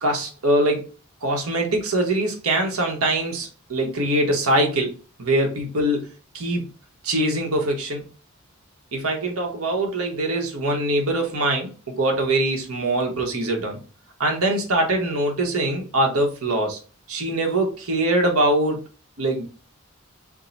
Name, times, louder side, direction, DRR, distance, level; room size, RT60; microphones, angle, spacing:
voice 1, 0.0-0.9 1.2-6.7 7.0-8.0 8.9-13.8 14.2-16.8 17.1-18.8 19.2-19.4, right 1 dB, 85° right, 2 dB, 1.1 m, -23 dB
3.6 x 2.2 x 4.0 m, 0.34 s
head